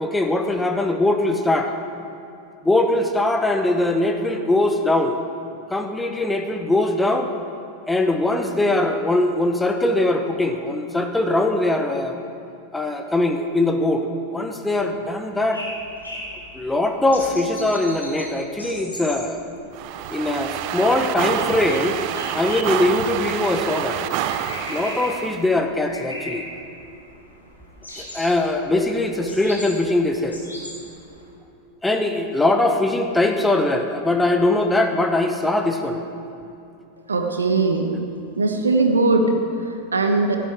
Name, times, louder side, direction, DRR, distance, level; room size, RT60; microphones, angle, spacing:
voice 1, 0.0-1.7 2.6-5.2 5.7-7.3 7.8-12.2 12.7-15.6 16.5-19.4 20.1-22.0 22.3-24.0 24.7-26.5 28.0-30.4 31.8-36.0, left 2 dB, 5° left, 5 dB, 0.9 m, -21 dB
sound 1, 15.5-31.3, left 1 dB, 80° left, 3.1 m, -39 dB
sound 2, 19.7-25.4, right 10 dB, 45° right, 0.6 m, -27 dB
voice 2, 37.1-37.9 38.4-40.4, right 3 dB, 75° right, 5 dB, 1.2 m, -20 dB
16.0 x 11.5 x 3.5 m, 2.8 s
figure-of-eight pair, 90°, 0 cm